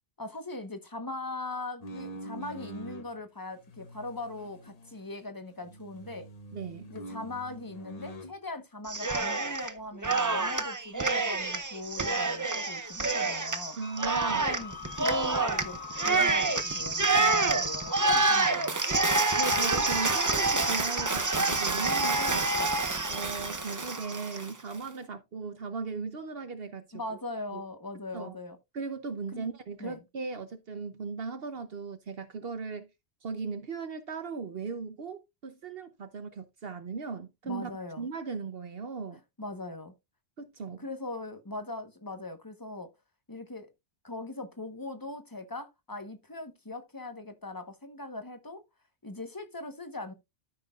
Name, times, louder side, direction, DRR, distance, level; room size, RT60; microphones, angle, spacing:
voice 1, 0.2-6.3 6.9-13.8 14.2-15.8 16.0-19.0 26.9-28.6 29.3-29.5 29.8-30.0 37.4-38.1 39.4-39.9 40.8-42.9 43.3-43.7 44.0-48.6 49.0-50.1, left 2 dB, 20° left, 1.1 m, -40 dB
sound 1, 1.8-3.1 3.6-5.3 5.6-8.3, right 1 dB, 40° left, 0.9 m, -45 dB
voice 2, 6.5-6.9 13.8-14.5 19.4-22.5 23.1-26.9 27.5-27.6 28.1-28.4 28.7-32.9 33.2-37.7 38.0-39.2 40.4-40.8, right 4 dB, 60° right, 1.0 m, -37 dB
Cheering, 8.9-9.7 10.0-24.5, right 3 dB, 20° right, 0.6 m, -27 dB
Wind instrument woodwind instrument, 13.8-19.2, left 11 dB, 65° left, 1.4 m, -45 dB
13.0 x 6.1 x 2.4 m
omnidirectional pair, 1.1 m